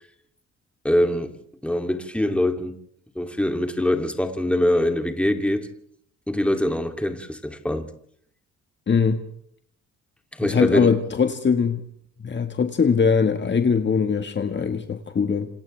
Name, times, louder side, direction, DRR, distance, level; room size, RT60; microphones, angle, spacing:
voice 1, 0.8-1.3 1.6-2.8 3.1-5.7 6.3-7.9 10.3-10.9, left 1 dB, 5° left, 2.9 m, -23 dB
voice 2, 8.9-9.2 10.4-11.8 12.2-15.5, left 6 dB, 35° left, 1.7 m, -21 dB
28.5 x 27.0 x 3.5 m
cardioid pair, 90°, 30 cm